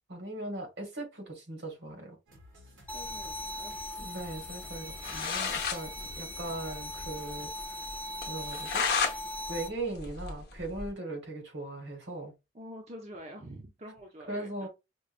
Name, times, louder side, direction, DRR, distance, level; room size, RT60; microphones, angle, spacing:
voice 1, 0.1-2.2 4.0-7.8 8.3-8.9 9.5-12.3 14.3-14.7, right 2 dB, 70° right, 1.5 m, -39 dB
sound 1, 2.3-7.5, left 1 dB, 85° right, 1.6 m, -54 dB
sound 2, 2.9-9.7, left 1 dB, 10° left, 0.5 m, -40 dB
voice 2, 2.9-3.8 12.5-14.7, equal, 35° right, 0.6 m, -46 dB
sound 3, 4.7-4.8 5.0-5.8 6.2-6.3 6.5-6.6 7.0-7.1 7.5-7.6 8.2-9.2 9.5-10.9, left 5 dB, 55° left, 0.7 m, -32 dB
5.1 x 2.3 x 2.4 m
head